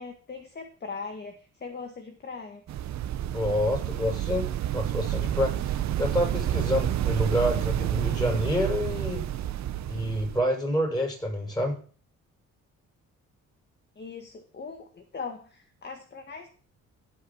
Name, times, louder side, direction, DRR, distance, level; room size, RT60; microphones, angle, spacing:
voice 1, 0.0-2.6 14.0-16.5, left 4 dB, 35° left, 5 dB, 1.8 m, -40 dB
sound 1, 2.7-10.4, right 12 dB, 65° right, 0.8 m, -29 dB
voice 2, 3.3-9.3 9.9-11.8, left 1 dB, 15° left, 0 dB, 7.6 m, -28 dB
17.0 x 5.7 x 6.3 m, 0.42 s
cardioid pair, 90°, 30 cm